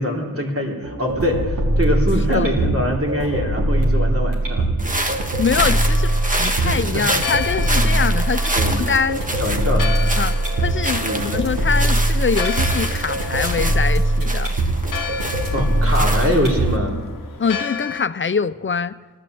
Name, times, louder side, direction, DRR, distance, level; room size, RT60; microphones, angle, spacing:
voice 1, 0.0-4.7 6.6-7.0 7.8-7.9 8.5-8.7 9.4-10.0 11.0-11.3 15.5-17.0 17.5-17.6, left 1 dB, 40° right, 0 dB, 3.3 m, -23 dB
sound 1, 0.8-16.8, right 1 dB, 70° right, 3.6 m, -21 dB
sound 2, 4.8-16.7, right 1 dB, 25° right, 1.4 m, -28 dB
voice 2, 5.4-9.2 10.2-14.5 17.4-18.9, left 5 dB, 35° left, 15 dB, 0.6 m, -24 dB
Church bell, 5.6-18.0, left 7 dB, 75° left, 0.7 m, -33 dB
15.5 x 12.0 x 7.8 m, 1.4 s
cardioid pair, 60°, 33 cm